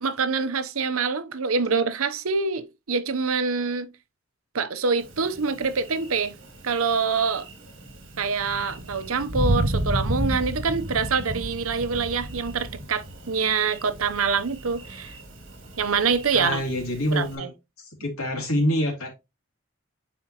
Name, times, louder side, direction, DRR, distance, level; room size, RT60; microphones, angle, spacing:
voice 1, 0.0-3.9 4.5-6.3 6.6-7.4 8.2-15.1 15.8-16.6 17.1-17.5, right 5 dB, 80° right, 0.8 m, -25 dB
Thunder, 5.0-17.4, right 1 dB, 60° right, 2.2 m, -33 dB
voice 2, 16.3-17.5 17.8-19.1, left 1 dB, 90° left, 2.7 m, -26 dB
9.2 x 4.3 x 2.9 m
head